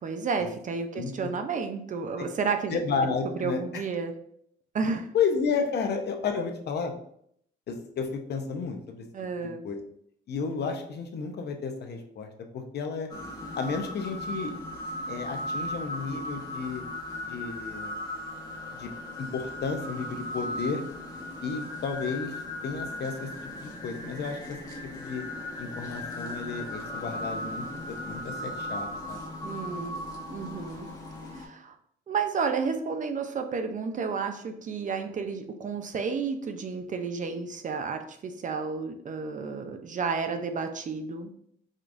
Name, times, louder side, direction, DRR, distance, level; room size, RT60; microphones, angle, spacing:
voice 1, 0.0-2.8 3.2-4.1 4.7-5.1 9.1-9.6 29.4-30.0 30.3-30.9 31.3-31.8 32.1-41.3, right 5 dB, 40° right, 7 dB, 0.5 m, -31 dB
voice 2, 2.7-3.6 5.1-6.9 7.7-9.0 9.6-9.8 10.3-13.1 13.5-14.5 15.1-16.8 17.2-17.9 18.7-18.9 19.2-20.8 21.4-23.3 23.6-24.4 25.0-25.2 25.6-29.2, left 5 dB, 55° left, 4 dB, 0.6 m, -32 dB
sound 1, 13.1-31.5, left 1 dB, 20° left, 0.9 m, -37 dB
5.0 x 2.3 x 2.5 m, 0.69 s
cardioid pair, 90°, 20 cm